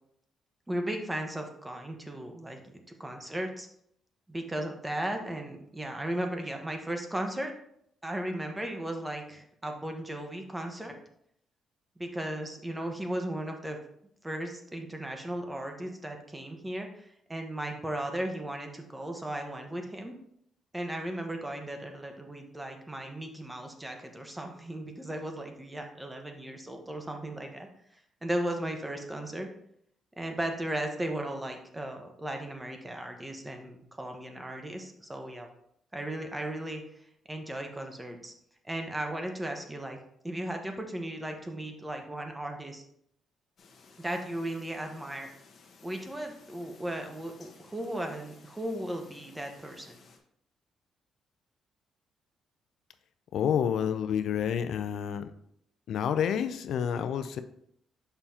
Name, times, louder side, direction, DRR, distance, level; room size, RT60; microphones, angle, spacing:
voice 1, 0.7-3.7 4.3-7.5 8.0-10.9 12.0-13.8 14.2-20.1 20.7-27.7 28.2-29.5 30.2-35.5 35.9-36.8 37.3-38.3 38.6-40.0 40.2-42.8 44.0-45.3 45.8-50.0, right 1 dB, 10° right, 4 dB, 1.1 m, -36 dB
sound 1, 43.6-50.2, left 4 dB, 55° left, 1.2 m, -57 dB
voice 2, 53.3-55.3 55.9-57.4, left 8 dB, 75° left, 10 dB, 0.4 m, -29 dB
6.8 x 5.6 x 2.8 m, 0.71 s
cardioid pair, 90°, 0 cm